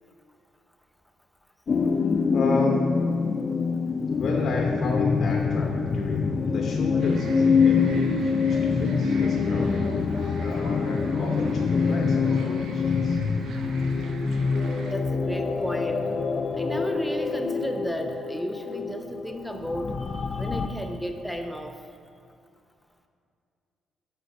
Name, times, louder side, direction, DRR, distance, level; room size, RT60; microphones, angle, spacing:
sound 1, 1.7-20.7, left 5 dB, 45° left, 0.4 m, -25 dB
voice 1, 2.3-3.0 4.2-9.9 10.4-13.2, left 2 dB, 65° left, 0 dB, 0.7 m, -32 dB
sound 2, 7.0-14.9, right 3 dB, 75° right, 0.7 m, -45 dB
voice 2, 14.9-16.0 16.6-19.9 20.3-21.7, equal, ahead, 4 dB, 0.6 m, -33 dB
6.5 x 4.4 x 5.1 m, 2.3 s
cardioid pair, 90°, 0 cm